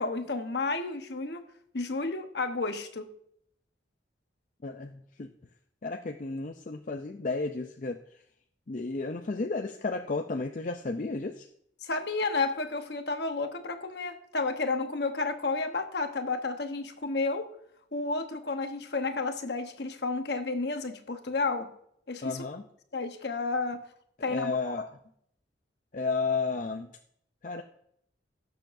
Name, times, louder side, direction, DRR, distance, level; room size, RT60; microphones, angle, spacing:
voice 1, 0.0-1.4 1.7-3.1 11.8-17.5 17.9-21.7 22.1-22.4 22.9-23.8 24.2-24.7, left 3 dB, 60° left, 6 dB, 1.0 m, -31 dB
voice 2, 4.6-5.3 5.8-8.0 8.7-11.5 22.2-22.6 24.3-25.0 25.9-26.9 27.4-27.6, left 3 dB, 45° left, 4 dB, 0.5 m, -32 dB
18.0 x 6.8 x 2.6 m, 0.70 s
head